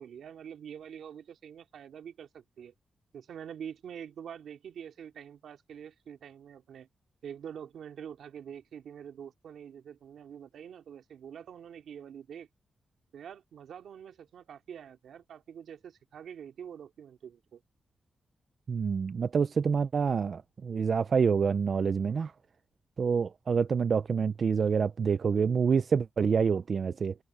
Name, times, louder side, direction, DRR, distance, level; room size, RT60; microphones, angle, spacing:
voice 1, 0.0-2.7 3.1-6.9 7.2-12.5 13.1-17.6, right 8 dB, 90° right, 2.5 m, -45 dB
voice 2, 18.7-22.3 23.0-27.1, right 6 dB, 50° right, 0.4 m, -27 dB
wide cardioid pair, 110°, 0 cm